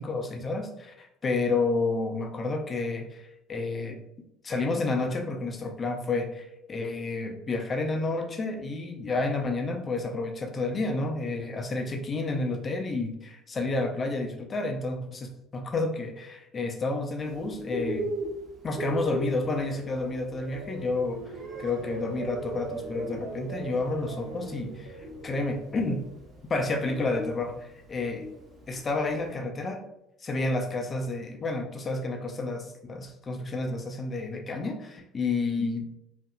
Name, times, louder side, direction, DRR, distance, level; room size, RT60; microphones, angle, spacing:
voice 1, 0.0-4.0 4.4-18.1 18.6-21.2 21.6-26.0 26.5-28.3 28.7-29.8 30.2-35.9, left 3 dB, 30° left, 3 dB, 0.4 m, -30 dB
Bird, 17.2-29.3, right 1 dB, 30° right, 0.8 m, -39 dB
sound 1, 19.4-26.5 26.9-27.3, right 3 dB, 70° right, 0.4 m, -40 dB
2.6 x 2.5 x 2.2 m, 0.84 s
figure-of-eight pair, 60°, 0 cm